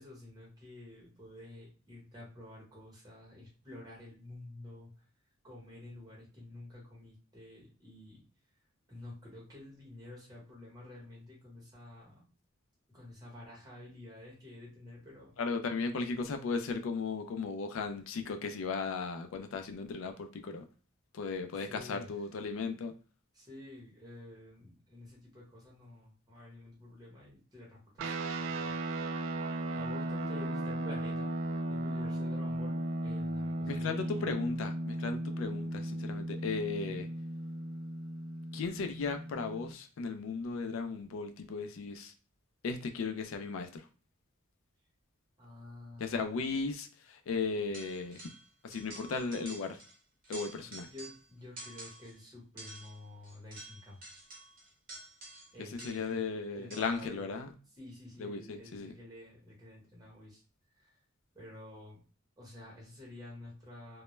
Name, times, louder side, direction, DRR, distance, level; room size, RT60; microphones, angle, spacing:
voice 1, 0.0-4.9 5.4-8.2 8.9-12.2 12.9-15.3 21.5-22.1 23.3-28.7 29.7-31.3 31.7-34.4 36.8-37.0 45.4-46.2 50.7-54.0 55.5-56.2 56.5-57.3 57.8-60.4 60.7-61.0 61.3-62.0 62.4-64.0, left 1 dB, 20° right, -4 dB, 1.0 m, -50 dB
voice 2, 15.4-20.6 21.1-22.9 33.7-37.1 38.5-42.1 42.6-43.9 46.0-48.2 48.6-49.8 50.3-50.9 55.8-57.5 58.2-58.9, left 4 dB, 75° left, 6 dB, 0.4 m, -36 dB
sound 1, 28.0-39.7, right 1 dB, 70° right, 0.3 m, -36 dB
sound 2, 47.7-48.5 48.7-50.0 50.2-51.3 51.6-52.2 52.6-56.2 56.7-57.1, right 2 dB, 45° right, 0.8 m, -49 dB
2.2 x 2.1 x 3.1 m, 0.37 s
head